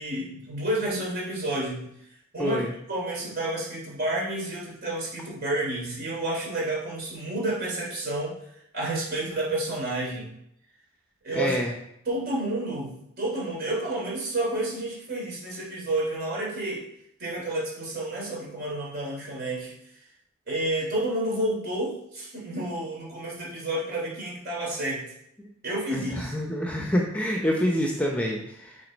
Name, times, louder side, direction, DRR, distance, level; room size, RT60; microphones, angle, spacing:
voice 1, 0.0-1.9 2.3-2.6 2.9-8.3 8.7-10.4 11.2-11.6 12.0-16.8 17.2-19.7 20.5-25.0 25.6-26.3, right 1 dB, 50° right, -4 dB, 3.2 m, -30 dB
voice 2, 2.4-2.7 11.3-11.7 25.4-25.5 25.9-28.8, left 1 dB, 5° left, 0 dB, 0.8 m, -27 dB
7.6 x 4.2 x 5.2 m, 0.77 s
head